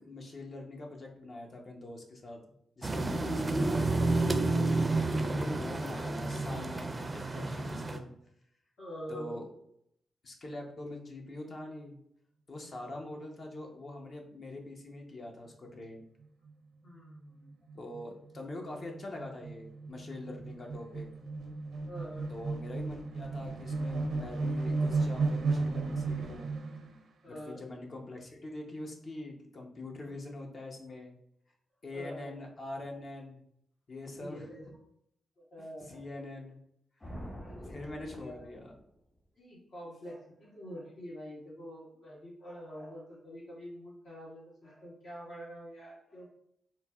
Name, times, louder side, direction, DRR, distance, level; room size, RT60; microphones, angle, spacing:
voice 1, 0.0-2.4 2.8-8.1 9.1-9.4 10.2-12.0 12.5-16.1 17.7-21.1 22.3-26.5 27.3-31.1 31.8-33.4 33.9-34.5 35.9-36.6 37.6-38.8, left 2 dB, 55° left, 1 dB, 0.7 m, -44 dB
sound 1, 2.8-8.0, right 2 dB, 30° right, 0.4 m, -30 dB
voice 2, 3.1-3.5 8.8-9.4 16.8-17.7 21.8-22.3 27.2-27.6 31.9-32.4 34.2-34.7 35.5-36.0 37.4-38.5 39.3-46.3, equal, 80° left, -6 dB, 1.4 m, -46 dB
sound 2, 16.2-16.5 16.9-17.0 17.2-26.9, right 3 dB, 80° right, 0.5 m, -34 dB
sound 3, 37.0-39.0, equal, 35° left, 1.3 m, -46 dB
4.0 x 2.0 x 2.3 m, 0.73 s
supercardioid pair, 50°, 0 cm